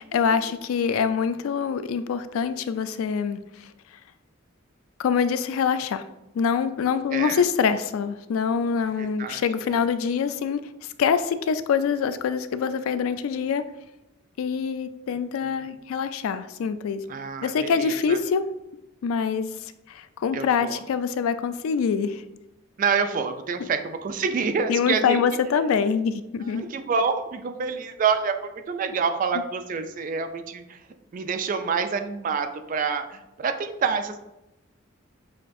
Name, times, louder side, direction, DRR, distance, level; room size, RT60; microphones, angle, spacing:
voice 1, 0.1-3.7 5.0-6.0 6.3-10.6 11.0-13.6 14.4-17.0 17.4-18.4 19.0-19.5 19.9-22.2 24.7-26.7, left 6 dB, 85° left, 12 dB, 0.3 m, -25 dB
voice 2, 7.1-7.4 9.0-9.8 15.4-15.7 17.1-18.2 20.3-20.8 22.8-25.2 26.5-30.8 31.1-34.2, right 5 dB, 40° right, 7 dB, 0.3 m, -27 dB
6.4 x 2.5 x 2.6 m, 0.92 s
head